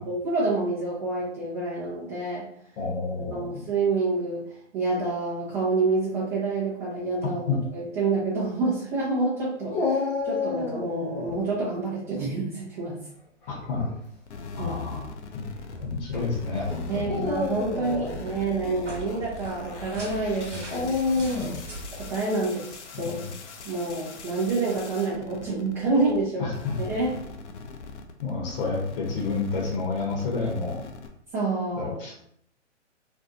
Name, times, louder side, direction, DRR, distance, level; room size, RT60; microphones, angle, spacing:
voice 1, 0.0-2.5 3.3-4.4 4.7-13.0 14.6-15.1 16.9-20.9 22.0-23.2 23.6-26.4 26.8-27.1 31.3-31.9, right 3 dB, 20° right, -7 dB, 0.5 m, -28 dB
voice 2, 2.8-3.6 7.5-7.6 13.5-13.9 14.6-15.1 15.3-15.4 15.8-17.2 23.0-23.3 26.4-26.7 28.2-30.8 31.8-32.2, left 4 dB, 50° left, -2 dB, 0.9 m, -30 dB
Dog, 9.7-11.4 13.5-13.9 14.7-14.8 17.0-18.2 20.7-21.7, left 3 dB, 25° left, 0.6 m, -28 dB
sound 1, 14.3-26.2 26.5-31.1, left 4 dB, 70° left, 0.6 m, -42 dB
sound 2, 15.7-22.1, equal, 85° right, 1.0 m, -40 dB
2.5 x 2.3 x 2.6 m, 0.69 s
figure-of-eight pair, 125°, 36 cm